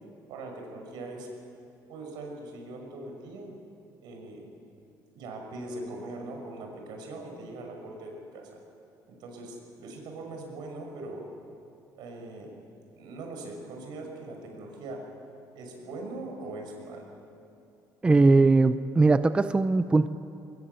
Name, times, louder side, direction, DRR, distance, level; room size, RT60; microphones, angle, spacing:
voice 1, 0.3-1.3 1.9-3.5 4.0-4.5 5.1-8.6 9.1-11.3 11.9-12.5 12.9-15.0 15.5-17.1, right 2 dB, 75° right, 2 dB, 6.2 m, -41 dB
voice 2, 18.0-20.1, right 3 dB, 15° right, 12 dB, 0.5 m, -20 dB
23.0 x 21.0 x 8.2 m, 2.6 s
cardioid pair, 140°, 7 cm